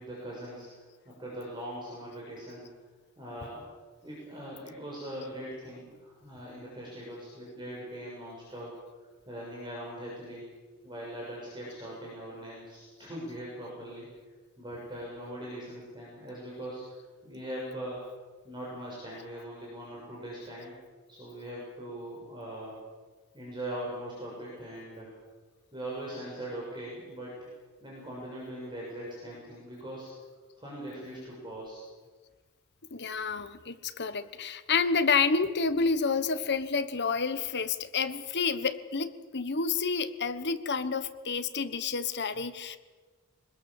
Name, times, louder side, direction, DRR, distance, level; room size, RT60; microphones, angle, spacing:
voice 1, 0.0-2.7 3.2-3.6 4.0-8.7 9.3-10.4 10.8-14.1 14.6-18.0 18.4-20.7 21.1-22.8 23.3-25.1 25.7-27.5 27.8-30.1 30.6-31.8, right 1 dB, 20° right, -5 dB, 6.7 m, -41 dB
voice 2, 32.9-42.8, left 5 dB, 50° left, 11 dB, 1.3 m, -29 dB
25.0 x 20.5 x 7.3 m, 1.4 s
head